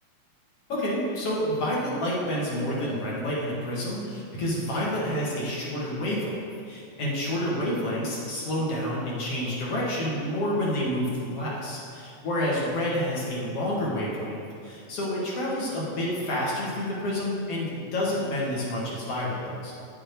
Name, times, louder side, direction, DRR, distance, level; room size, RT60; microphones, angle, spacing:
voice 1, 0.7-19.7, left 1 dB, 55° left, -6 dB, 2.9 m, -29 dB
9.9 x 7.8 x 4.5 m, 2.4 s
omnidirectional pair, 3.3 m